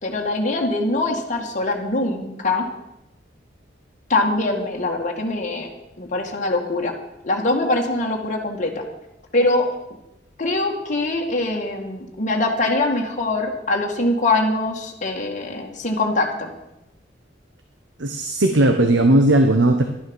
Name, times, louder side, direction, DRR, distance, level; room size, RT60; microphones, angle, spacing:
voice 1, 0.0-2.7 4.1-6.9 7.2-8.7 9.3-9.7 10.4-16.5, left 2 dB, 45° left, 0 dB, 2.1 m, -23 dB
voice 2, 18.0-19.8, right 1 dB, 80° right, 5 dB, 1.2 m, -16 dB
12.0 x 11.5 x 7.1 m, 0.89 s
head